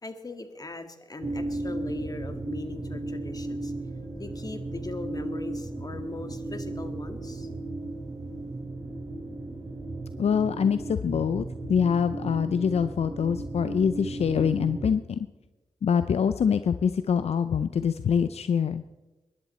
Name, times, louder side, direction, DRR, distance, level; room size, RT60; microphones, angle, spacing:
voice 1, 0.0-3.7 4.2-7.5, left 2 dB, 35° left, 7 dB, 1.8 m, -39 dB
sound 1, 1.2-14.9, right 2 dB, 35° right, 3.1 m, -35 dB
voice 2, 10.2-15.3 15.8-18.8, left 7 dB, 70° left, 11 dB, 0.5 m, -25 dB
22.0 x 11.0 x 4.2 m, 1.1 s
cardioid pair, 55°, 11 cm